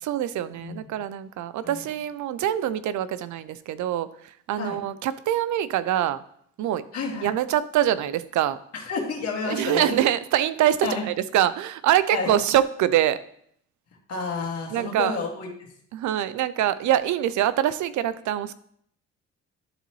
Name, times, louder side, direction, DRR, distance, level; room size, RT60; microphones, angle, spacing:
voice 1, 0.0-6.2 6.6-6.8 7.2-8.6 9.5-13.2 14.7-15.2 15.9-18.5, right 11 dB, 70° right, 15 dB, 0.5 m, -24 dB
voice 2, 6.9-7.3 8.7-9.9 10.8-11.0 12.1-12.3 14.1-15.7, left 4 dB, 55° left, -2 dB, 2.0 m, -30 dB
11.5 x 4.0 x 3.1 m, 0.66 s
cardioid pair, 90°, 30 cm